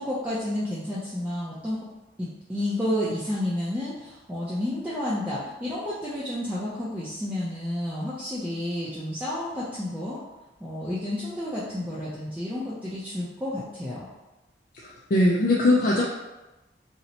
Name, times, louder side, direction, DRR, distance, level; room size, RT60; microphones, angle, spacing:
voice 1, 0.0-1.9 2.2-10.2 10.6-14.1, left 1 dB, 10° right, -9 dB, 0.4 m, -31 dB
voice 2, 14.7-16.0, left 1 dB, 50° left, -3 dB, 0.4 m, -21 dB
2.8 x 2.1 x 4.0 m, 1.0 s
head